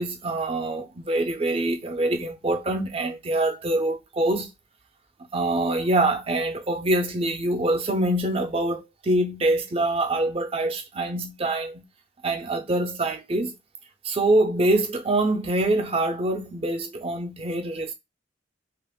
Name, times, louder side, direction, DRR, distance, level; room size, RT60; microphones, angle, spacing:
voice 1, 0.0-4.5 5.3-11.8 12.2-13.5 14.1-17.9, right 2 dB, 30° right, 0.5 m, -25 dB
2.5 x 2.4 x 3.5 m
head